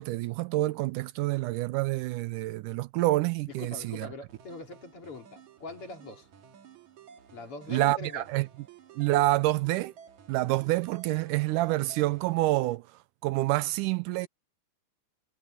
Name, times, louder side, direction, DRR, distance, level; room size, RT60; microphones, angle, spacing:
voice 1, 0.0-4.1 7.7-8.5 8.9-9.9 10.3-12.9 13.2-14.3, right 18 dB, 80° right, 2.0 m, -27 dB
voice 2, 3.6-6.3 7.3-8.3, left 3 dB, 45° left, 3.5 m, -42 dB
sound 1, 4.3-12.8, right 8 dB, 65° right, 3.4 m, -53 dB
omnidirectional pair, 3.8 m